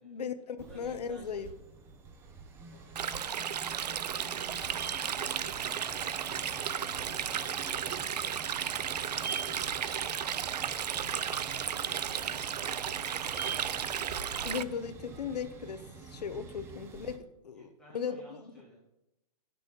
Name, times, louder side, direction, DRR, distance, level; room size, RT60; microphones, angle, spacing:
voice 1, 0.0-1.5 14.4-18.5, left 6 dB, 80° left, 11 dB, 1.2 m, -37 dB
voice 2, 0.6-1.6 2.6-13.2 14.4-15.3 17.5-18.8, equal, 5° left, -7 dB, 3.1 m, -56 dB
sound 1, 0.6-17.2, right 5 dB, 10° right, 0.9 m, -46 dB
Stream, 3.0-14.6, right 8 dB, 85° right, 0.6 m, -34 dB
16.5 x 6.8 x 4.0 m, 0.89 s
hypercardioid pair, 160°, 20 cm